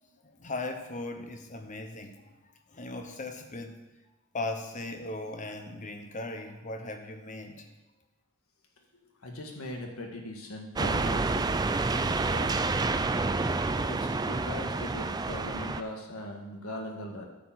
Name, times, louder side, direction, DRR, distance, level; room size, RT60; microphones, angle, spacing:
voice 1, 0.2-3.8 4.3-7.8, left 2 dB, 35° left, 6 dB, 1.0 m, -38 dB
voice 2, 9.2-11.5 12.0-12.5 13.9-17.3, left 1 dB, 70° left, 1 dB, 1.8 m, -40 dB
sound 1, 10.8-15.8, right 3 dB, 20° right, 0.4 m, -28 dB
10.0 x 4.7 x 7.5 m, 1.1 s
head